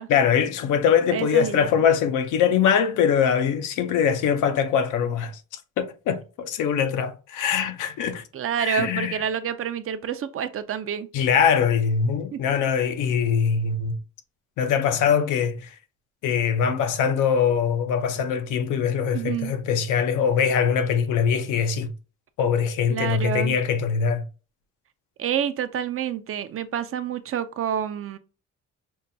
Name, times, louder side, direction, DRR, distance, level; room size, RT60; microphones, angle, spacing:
voice 1, 0.1-5.3 5.8-8.2 8.6-9.2 11.1-14.0 14.6-15.7 16.2-21.9 22.4-24.2, left 7 dB, 85° left, 0.6 m, -22 dB
voice 2, 1.1-1.7 8.3-11.1 12.3-12.4 19.1-19.5 22.9-23.6 25.2-28.2, right 9 dB, 45° right, 0.5 m, -28 dB
5.4 x 2.2 x 2.6 m
cardioid pair, 90°, 30 cm